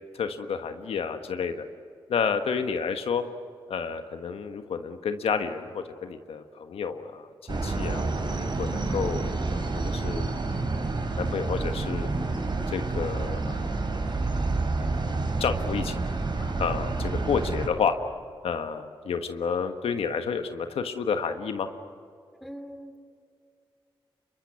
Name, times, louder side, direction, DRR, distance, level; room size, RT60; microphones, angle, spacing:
voice 1, 0.1-1.7 2.1-3.2 3.7-8.1 8.4-10.3 11.2-12.1 12.7-13.7 14.8-16.0 16.3-17.9 18.4-21.7, left 6 dB, 90° left, 7 dB, 1.4 m, -30 dB
sound 1, 7.5-17.7, right 3 dB, 50° right, 4.1 m, -29 dB
voice 2, 22.4-23.0, equal, ahead, 9 dB, 2.9 m, -41 dB
26.0 x 23.0 x 9.6 m, 2.3 s
cardioid pair, 55°, 10 cm